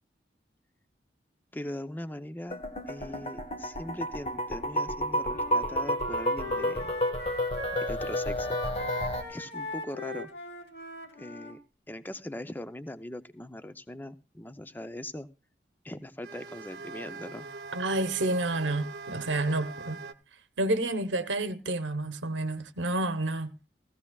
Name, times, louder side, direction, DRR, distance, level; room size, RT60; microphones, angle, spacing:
voice 1, 1.5-2.6 2.9-6.9 7.7-8.6 9.3-10.3 11.2-11.6 11.9-15.3 15.8-17.5, left 1 dB, 10° left, 0.6 m, -40 dB
sound 1, 2.5-9.2, equal, 35° left, 1.2 m, -31 dB
Wind instrument woodwind instrument, 5.2-11.5, left 2 dB, 70° left, 2.5 m, -40 dB
sound 2, 16.2-20.1, right 4 dB, 60° right, 0.7 m, -42 dB
voice 2, 17.7-20.0 20.6-23.5, right 2 dB, 90° right, 0.9 m, -29 dB
16.0 x 15.5 x 2.3 m
head